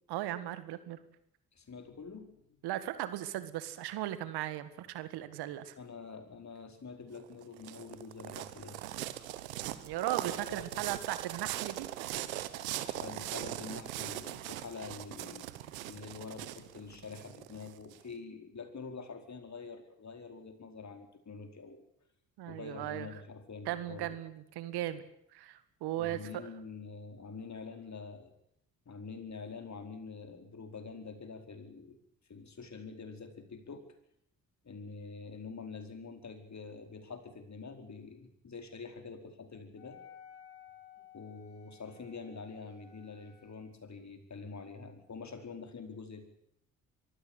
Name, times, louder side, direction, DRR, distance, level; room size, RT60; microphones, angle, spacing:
voice 1, 0.1-1.0 2.6-5.8 9.8-12.3 22.4-23.1 23.7-25.0 25.3-26.5, right 13 dB, 70° right, 13 dB, 1.8 m, -37 dB
voice 2, 1.5-2.6 5.8-8.8 10.2-10.8 12.8-15.5 15.8-21.8 22.5-24.2 26.0-28.3 28.8-32.0 32.3-33.8 34.6-40.0 41.1-46.3, left 4 dB, 45° left, 6 dB, 4.8 m, -46 dB
sound 1, 7.1-18.0, right 14 dB, 90° right, 1.1 m, -40 dB
Wind instrument woodwind instrument, 39.8-43.7, left 8 dB, 75° left, 4.0 m, -56 dB
23.5 x 15.5 x 9.3 m, 0.73 s
hypercardioid pair, 45°, 40 cm